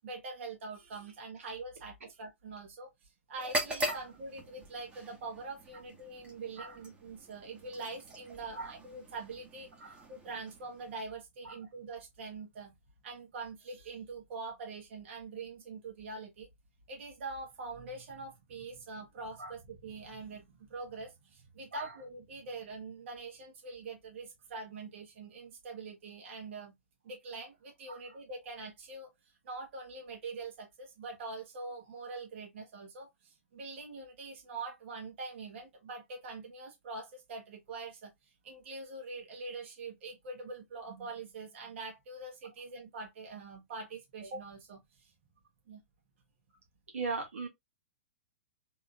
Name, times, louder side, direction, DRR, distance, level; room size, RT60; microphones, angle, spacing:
voice 1, 0.0-12.7 13.0-16.5 16.9-26.7 27.0-38.1 38.4-45.1 45.7-45.8, right 3 dB, 60° right, 1.3 m, -44 dB
sound 1, 3.3-11.2, equal, 15° right, 1.1 m, -41 dB
voice 2, 46.9-47.5, right 4 dB, 80° right, 1.4 m, -38 dB
3.6 x 2.8 x 2.3 m
hypercardioid pair, 130°, 7 cm